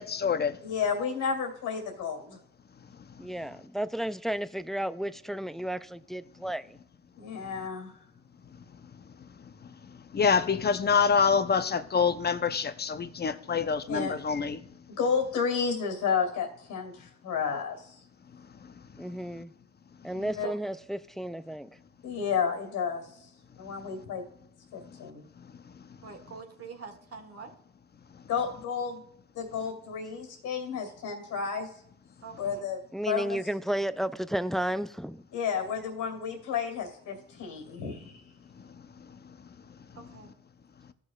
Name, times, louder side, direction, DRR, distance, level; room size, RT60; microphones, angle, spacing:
voice 1, 0.0-0.6 10.1-14.6, left 6 dB, 35° left, 0.7 m, -26 dB
voice 2, 0.6-2.4 7.2-8.0 13.9-14.1 14.9-17.9 20.1-20.5 22.0-23.2 23.6-24.2 24.7-25.2 28.3-29.0 29.3-31.7 32.4-33.4 35.3-38.2, left 6 dB, 90° left, 2.4 m, -31 dB
voice 3, 3.2-6.7 19.0-19.5 20.0-21.7 32.9-35.2, right 1 dB, ahead, 0.3 m, -33 dB
voice 4, 26.0-27.5 32.2-32.7 39.9-40.3, right 6 dB, 55° right, 1.6 m, -44 dB
15.0 x 6.3 x 2.4 m
cardioid pair, 90°, 30 cm